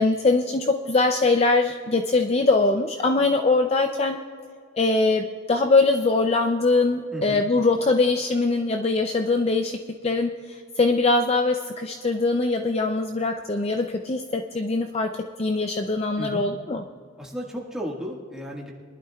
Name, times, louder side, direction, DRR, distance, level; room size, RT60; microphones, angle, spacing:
voice 1, 0.0-4.2 4.8-15.1 15.4-16.8, left 3 dB, 30° left, 5 dB, 0.5 m, -22 dB
voice 2, 7.1-7.5 16.2-16.5 17.2-18.7, equal, 5° right, -3 dB, 1.7 m, -34 dB
22.5 x 11.5 x 2.3 m, 2.1 s
head